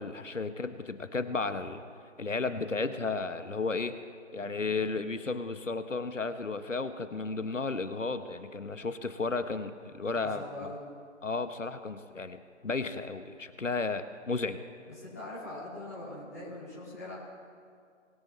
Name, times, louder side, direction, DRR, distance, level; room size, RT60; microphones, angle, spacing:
voice 1, 0.0-1.8 2.2-3.9 4.3-10.7 11.2-14.6, left 3 dB, 70° left, 10 dB, 1.1 m, -33 dB
voice 2, 10.1-10.8 15.0-17.1, left 2 dB, 10° left, -9 dB, 2.2 m, -42 dB
22.0 x 9.7 x 3.2 m, 2.2 s
figure-of-eight pair, 170°, 39 cm